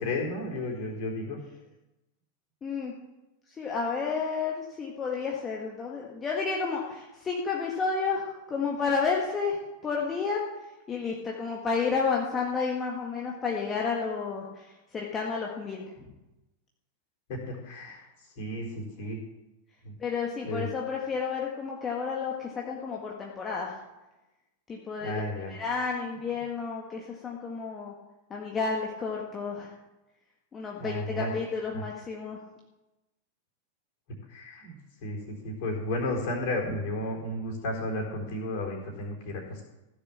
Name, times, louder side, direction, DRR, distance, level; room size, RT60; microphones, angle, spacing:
voice 1, 0.0-1.4 17.3-18.0 18.4-19.2 19.8-20.0 20.5-20.7 25.0-25.5 30.8-31.3 31.7-31.8 34.3-34.7 35.0-39.6, left 1 dB, 50° left, 0 dB, 4.0 m, -33 dB
voice 2, 2.6-2.9 3.5-9.6 9.8-10.4 10.9-16.1 20.0-23.8 24.7-25.2 25.5-27.9 28.3-29.7 30.5-32.4, left 5 dB, 20° left, -2 dB, 1.8 m, -31 dB
15.5 x 6.9 x 7.2 m, 1.0 s
figure-of-eight pair, 90°, 0 cm